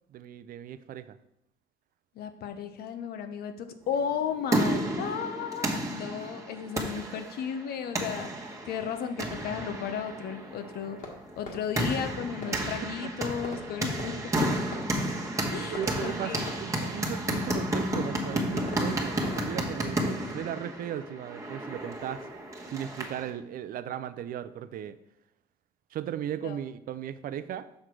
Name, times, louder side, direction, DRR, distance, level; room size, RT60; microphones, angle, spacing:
voice 1, 0.1-1.2 12.5-12.7 13.0-13.1 15.3-16.3 16.6-22.3 22.7-25.0 25.9-27.7, right 10 dB, 60° right, 13 dB, 0.5 m, -37 dB
voice 2, 2.1-8.3 8.7-11.0 11.4-14.5 15.5-16.5 26.4-26.6, left 7 dB, 65° left, 8 dB, 0.9 m, -34 dB
sound 1, 4.1-23.3, right 1 dB, 20° right, 1.4 m, -32 dB
Fireworks, 11.0-21.6, left 3 dB, 50° left, 1.8 m, -47 dB
6.4 x 5.9 x 4.7 m, 0.83 s
cardioid pair, 110°, 17 cm